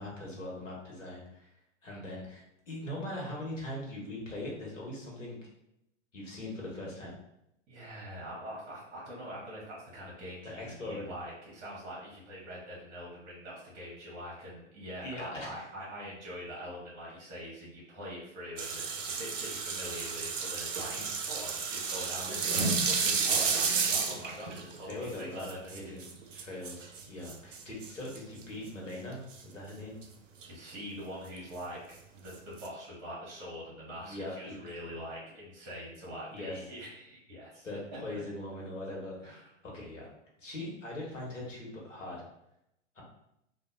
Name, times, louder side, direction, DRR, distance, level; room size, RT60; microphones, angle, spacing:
voice 1, 0.0-1.5 1.8-5.4 6.1-7.1 10.4-11.1 15.0-15.6 20.9-21.1 23.2-23.5 24.9-30.0 34.0-34.8 36.3-36.6 37.6-40.1 40.4-42.2 42.9-43.0, left 1 dB, 75° left, -3 dB, 1.1 m, -41 dB
voice 2, 7.7-26.0 30.5-31.8 32.1-38.2 39.2-39.4, equal, 35° right, -6 dB, 1.1 m, -44 dB
sound 1, 18.6-28.4 29.3-29.4 29.8-30.0 30.4-30.5 31.4-31.5 32.3-32.7, right 5 dB, 75° right, 0.5 m, -32 dB
2.7 x 2.3 x 2.5 m, 0.81 s
figure-of-eight pair, 100°, 38 cm